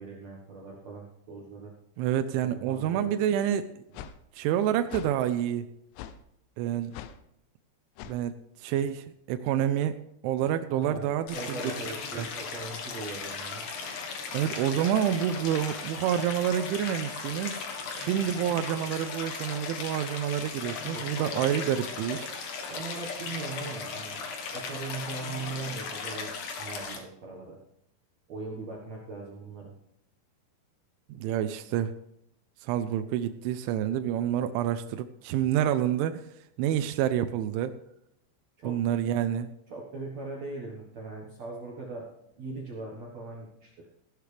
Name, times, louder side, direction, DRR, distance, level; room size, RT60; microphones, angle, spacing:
voice 1, 0.0-1.7 2.5-3.1 10.7-13.6 20.9-21.4 22.7-24.2 24.5-26.3 26.6-27.6 28.3-29.7 38.6-38.8 39.7-42.1 42.4-43.9, right 3 dB, 60° right, -2 dB, 1.8 m, -40 dB
voice 2, 2.0-3.8 4.3-5.7 6.6-6.9 8.1-10.0 10.2-11.8 12.2-12.3 14.3-17.6 17.9-22.3 31.1-31.9 32.6-36.3 36.6-37.8 38.6-39.5, right 10 dB, 85° right, 9 dB, 3.0 m, -28 dB
sound 1, 3.9-4.2 4.9-5.1 6.0-6.2 6.9-7.2 8.0-8.2, left 10 dB, 80° left, 2.9 m, -41 dB
Stream, 11.3-27.0, left 5 dB, 60° left, 2.3 m, -37 dB
15.5 x 11.5 x 3.4 m, 0.78 s
omnidirectional pair, 5.4 m